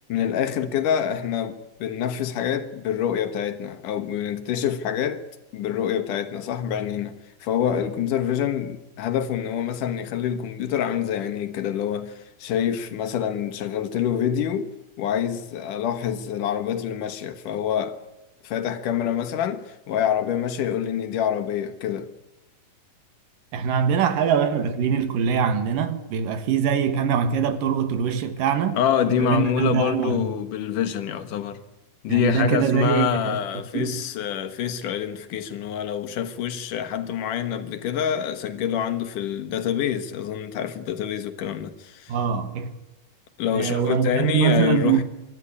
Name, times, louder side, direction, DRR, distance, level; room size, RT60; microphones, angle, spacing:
voice 1, 0.1-5.2 5.5-7.1 7.4-14.7 15.0-18.0 18.4-22.1 28.7-31.6 32.0-42.2 43.4-45.0, left 9 dB, 75° left, 2.8 m, -26 dB
voice 2, 23.5-28.8 29.1-30.3 32.1-33.4 33.7-34.0 42.1-42.7 43.5-45.0, right 7 dB, 80° right, 3.2 m, -23 dB
25.0 x 13.0 x 9.8 m
omnidirectional pair, 3.8 m